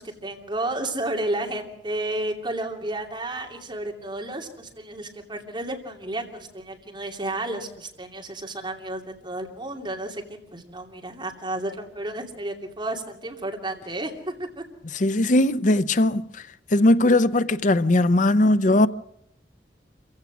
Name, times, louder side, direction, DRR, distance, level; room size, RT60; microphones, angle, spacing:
voice 1, 0.0-14.6, right 1 dB, 25° right, 2.8 m, -32 dB
voice 2, 14.9-16.4 16.7-18.9, left 1 dB, 45° left, 0.7 m, -19 dB
27.0 x 16.0 x 6.2 m
head